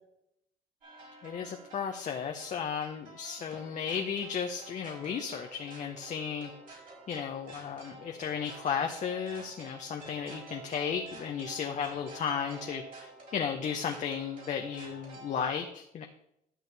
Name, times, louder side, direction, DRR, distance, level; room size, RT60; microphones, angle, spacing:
sound 1, 0.8-15.5, right 2 dB, 55° right, 4.2 m, -50 dB
voice 1, 1.2-6.5 7.1-12.8 13.3-16.1, left 7 dB, 45° left, 3 dB, 0.8 m, -34 dB
12.5 x 6.3 x 3.4 m, 0.78 s
cardioid pair, 110°, 17 cm